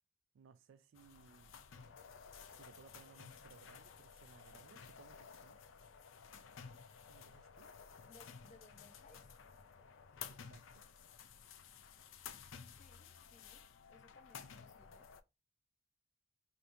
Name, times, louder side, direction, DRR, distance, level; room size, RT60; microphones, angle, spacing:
voice 1, 0.3-1.7 2.5-5.6 7.1-7.7 10.3-10.9, right 6 dB, 80° right, 0.3 m, -63 dB
sound 1, 1.0-15.2, left 7 dB, 90° left, 0.5 m, -54 dB
voice 2, 8.1-9.3 12.7-15.1, left 3 dB, 40° left, 0.6 m, -64 dB
5.0 x 3.0 x 2.6 m
head